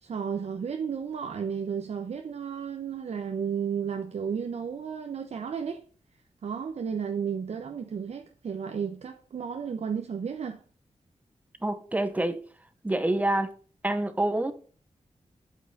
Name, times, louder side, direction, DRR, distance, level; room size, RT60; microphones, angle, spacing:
voice 1, 0.0-5.8 6.4-10.6, right 7 dB, 65° right, 0.8 m, -33 dB
voice 2, 11.6-12.4 12.8-13.5 13.8-14.5, right 1 dB, 15° right, 0.8 m, -27 dB
8.3 x 5.5 x 5.5 m
wide cardioid pair, 170°, 12 cm